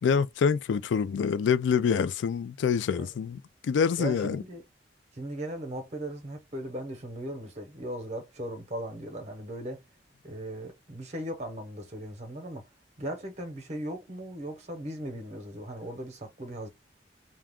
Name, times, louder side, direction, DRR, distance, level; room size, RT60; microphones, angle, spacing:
voice 1, 0.0-4.4, left 6 dB, 85° left, 0.3 m, -26 dB
voice 2, 4.0-4.6 5.1-9.8 10.2-12.7 13.0-16.7, right 1 dB, 40° right, 0.8 m, -38 dB
2.3 x 2.2 x 3.5 m
head